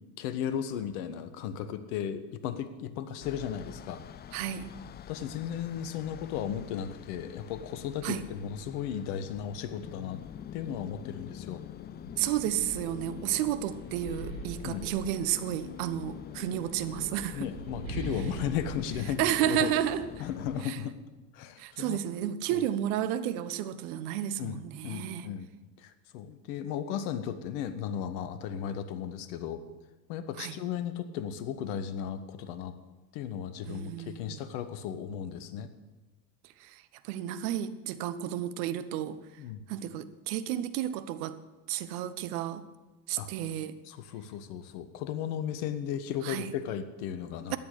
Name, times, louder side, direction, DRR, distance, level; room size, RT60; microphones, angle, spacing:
voice 1, 0.2-4.0 5.1-10.2 10.5-11.6 14.6-14.9 17.3-19.7 20.2-20.9 21.3-22.0 22.5-22.6 24.4-24.6 24.8-25.5 25.8-29.6 30.1-32.7 33.1-35.7 39.4-39.6 43.2-43.3 43.8-47.6, left 9 dB, 60° left, 1.5 m, -35 dB
sound 1, 3.2-20.6, left 9 dB, 20° left, 0.4 m, -45 dB
voice 2, 4.3-4.7 8.0-8.2 12.2-17.5 19.2-20.1 20.6-20.8 21.6-25.3 30.4-30.6 33.7-34.4 36.6-39.2 39.7-41.4 41.7-42.7 43.1-43.8 46.2-46.5 47.5-47.6, right 11 dB, 60° right, 1.1 m, -32 dB
sound 2, 11.5-11.6 12.0-15.7 16.6-20.2, right 3 dB, 90° right, 2.1 m, -43 dB
13.0 x 8.8 x 8.2 m
hypercardioid pair, 75°, 50 cm